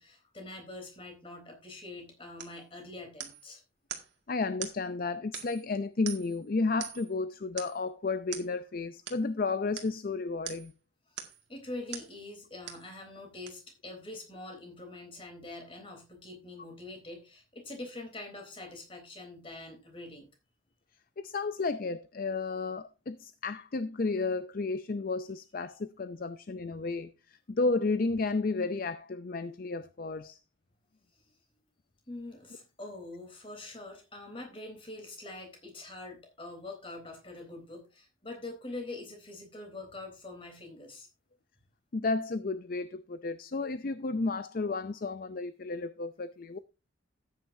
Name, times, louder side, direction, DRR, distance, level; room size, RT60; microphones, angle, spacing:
voice 1, 0.0-3.6 11.1-11.2 11.5-20.3 31.1-31.3 32.1-41.1, left 2 dB, 25° left, 3.6 m, -44 dB
sound 1, 2.4-2.6 3.2-3.5 3.9-4.1 4.6-4.8 5.3-5.7 6.0-6.4 6.8-7.1 7.6-7.8 8.3-8.5 9.1-9.2 9.7-9.9 10.4-10.7 11.2-11.4 11.9-12.1 12.7-12.9 13.5-13.6, right 9 dB, 60° right, 2.0 m, -42 dB
voice 2, 4.3-10.7 21.2-30.4 41.9-46.6, left 3 dB, 45° left, 0.5 m, -32 dB
13.5 x 9.4 x 2.7 m
head